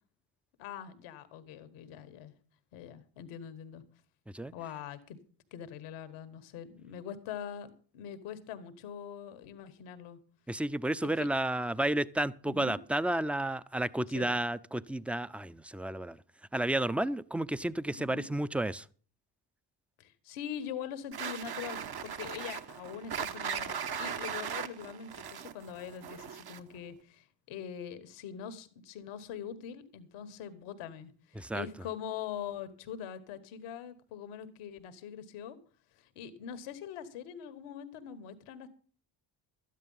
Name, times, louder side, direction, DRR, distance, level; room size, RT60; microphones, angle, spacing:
voice 1, 0.6-2.3 2.7-3.8 4.5-5.2 5.5-10.2 11.2-11.3 12.4-12.8 14.1-14.4 18.0-18.3 20.0-35.6 35.9-38.7, left 8 dB, 80° left, 1.5 m, -43 dB
voice 2, 10.5-16.2 16.5-18.8 31.4-31.7, right 1 dB, 5° right, 0.6 m, -31 dB
sound 1, 21.1-26.8, right 7 dB, 50° right, 1.2 m, -38 dB
13.0 x 10.0 x 5.6 m
hypercardioid pair, 45°, 49 cm